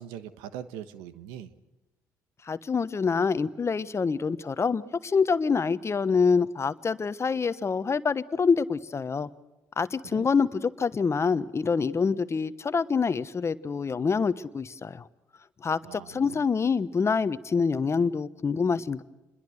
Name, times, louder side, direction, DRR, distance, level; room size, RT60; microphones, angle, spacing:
voice 1, 0.0-1.5 10.1-10.3 15.8-16.4, right 10 dB, 85° right, 12 dB, 1.2 m, -41 dB
voice 2, 2.5-9.3 9.8-15.1 15.6-19.0, left 5 dB, 40° left, 13 dB, 1.2 m, -26 dB
28.0 x 21.5 x 6.5 m, 1.0 s
supercardioid pair, 55°, 7 cm